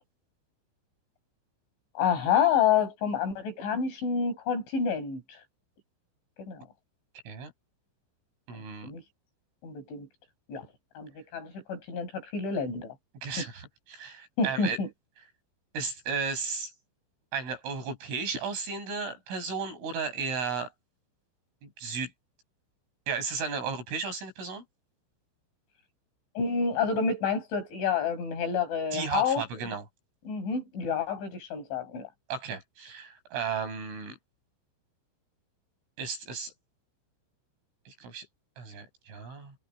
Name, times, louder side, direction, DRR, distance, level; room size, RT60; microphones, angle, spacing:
voice 1, 2.0-5.4 6.4-6.6 8.8-9.0 9.6-10.1 10.5-10.7 11.0-12.9 13.4-13.5 14.4-14.9 26.4-29.4 30.3-32.1, left 6 dB, 65° left, 9.9 m, -28 dB
voice 2, 8.5-8.9 13.2-14.8 15.7-16.7 17.3-20.7 21.6-22.1 23.1-24.6 28.9-29.8 32.3-34.2 36.0-36.5 37.9-38.3 38.6-39.6, right 5 dB, 70° right, 10.0 m, -34 dB
omnidirectional pair, 5.9 m